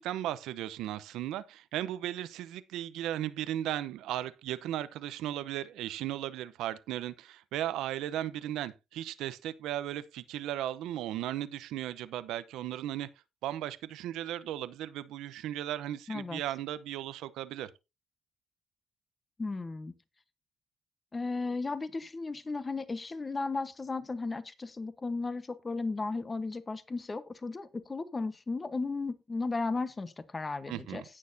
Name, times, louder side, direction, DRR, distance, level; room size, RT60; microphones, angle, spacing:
voice 1, 0.0-13.1 13.4-17.7 30.7-31.0, right 12 dB, 90° right, 0.8 m, -36 dB
voice 2, 16.1-16.4 19.4-19.9 21.1-31.0, left 3 dB, 25° left, 1.2 m, -35 dB
17.5 x 6.5 x 2.7 m
cardioid pair, 90°, 0 cm